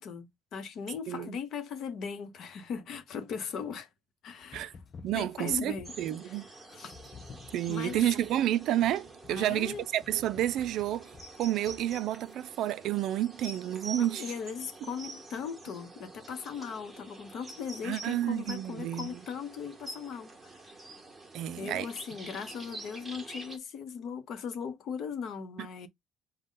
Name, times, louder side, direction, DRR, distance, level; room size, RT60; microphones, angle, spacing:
voice 1, 0.0-3.9 4.2-4.8 5.1-5.9 6.2-7.0 7.7-8.0 9.3-9.9 14.0-20.8 21.6-25.9, left 6 dB, 50° left, 0.8 m, -39 dB
voice 2, 1.1-1.4 4.5-4.7 5.0-6.5 7.5-11.1 11.4-14.3 17.8-19.1 21.3-21.9 25.6-25.7, right 12 dB, 60° right, 0.3 m, -30 dB
sound 1, 4.4-6.2 6.9-12.3, left 5 dB, 25° left, 0.4 m, -52 dB
sound 2, 5.8-23.6, right 2 dB, 10° right, 1.0 m, -47 dB
5.1 x 2.2 x 3.7 m
cardioid pair, 165°, 0 cm